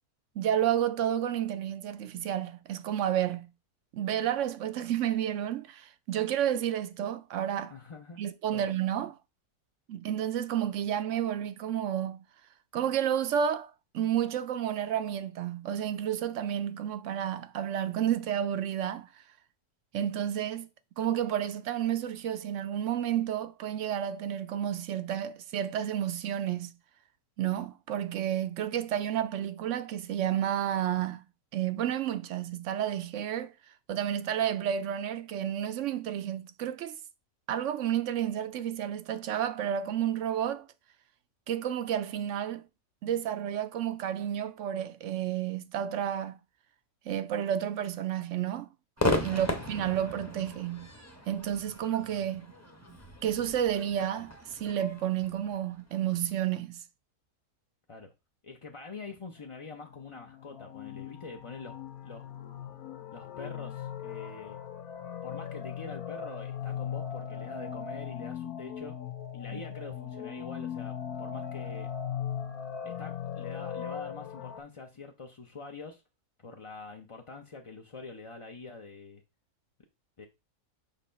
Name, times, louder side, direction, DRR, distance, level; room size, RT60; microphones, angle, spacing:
voice 1, 0.4-3.5 3.9-7.7 8.2-9.2 9.9-12.2 12.7-19.2 19.9-20.7 21.0-26.7 27.4-31.2 31.5-33.5 33.9-37.0 37.5-40.7 41.5-42.6 43.0-46.4 47.1-48.7 49.0-50.9 51.3-52.5 53.2-56.8 69.5-69.6, right 10 dB, 65° right, 0.8 m, -31 dB
voice 2, 7.7-8.2 8.5-8.7 49.3-49.5 57.9-58.1 58.4-61.8 62.0-62.2 63.1-64.6 65.2-69.0 69.3-71.9 72.8-76.0 76.4-79.2 80.2-80.3, left 4 dB, 40° left, 0.4 m, -45 dB
Crowd / Fireworks, 49.0-56.3, left 2 dB, 15° left, 0.7 m, -36 dB
sound 1, 59.9-74.6, left 8 dB, 70° left, 1.4 m, -39 dB
6.9 x 3.1 x 5.6 m
omnidirectional pair, 1.6 m